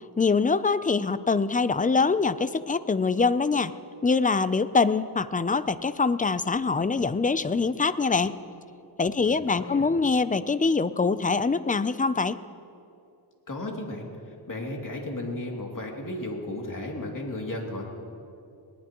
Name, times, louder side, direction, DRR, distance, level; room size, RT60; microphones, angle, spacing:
voice 1, 0.2-3.7 4.0-8.4 9.0-12.4, left 4 dB, 20° left, 14 dB, 0.4 m, -24 dB
voice 2, 9.2-9.9 13.5-14.1 14.5-17.9, left 1 dB, 45° left, 0 dB, 2.7 m, -34 dB
20.0 x 19.5 x 3.0 m, 2.6 s
wide cardioid pair, 85°, 45 cm